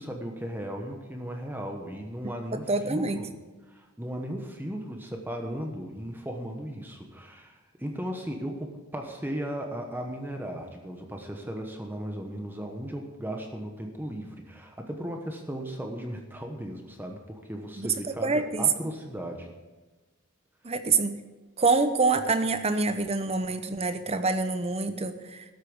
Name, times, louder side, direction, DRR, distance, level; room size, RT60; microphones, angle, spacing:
voice 1, 0.0-3.3 3.7-19.5, equal, 10° right, 2 dB, 1.1 m, -36 dB
voice 2, 2.7-3.2 17.8-17.9 18.2-18.7 20.6-21.1 21.6-25.4, right 3 dB, 30° right, 10 dB, 0.8 m, -26 dB
13.0 x 8.4 x 7.1 m, 1.2 s
head